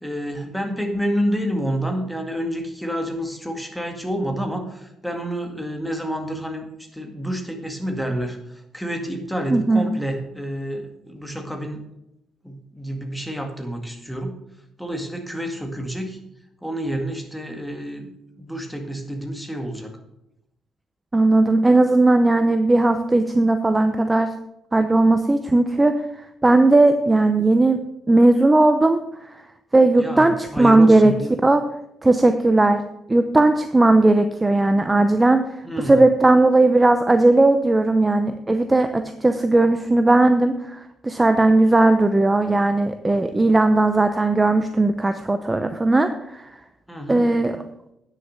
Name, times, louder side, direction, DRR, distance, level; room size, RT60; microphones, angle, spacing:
voice 1, 0.0-8.4 8.7-11.8 12.4-14.4 14.8-16.2 16.6-18.1 18.4-19.9 30.0-31.1 35.6-36.0 46.9-47.3, equal, ahead, 3 dB, 2.0 m, -28 dB
voice 2, 9.5-9.9 21.1-24.3 24.7-27.8 28.1-29.3 29.7-31.6 32.0-32.8 33.1-46.5 47.1-47.6, right 2 dB, 15° right, 8 dB, 0.7 m, -17 dB
9.7 x 6.6 x 6.5 m, 0.85 s
cardioid pair, 90°, 0 cm